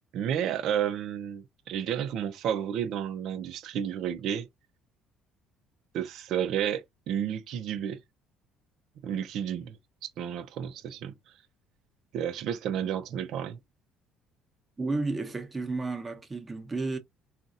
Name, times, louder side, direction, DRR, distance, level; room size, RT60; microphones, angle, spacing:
voice 1, 0.1-4.5 5.9-8.0 9.0-9.8 10.0-11.1 12.1-13.6, right 9 dB, 60° right, 0.6 m, -31 dB
voice 2, 14.8-17.0, right 3 dB, 20° right, 0.8 m, -32 dB
4.0 x 2.4 x 2.4 m
cardioid pair, 130°, 0 cm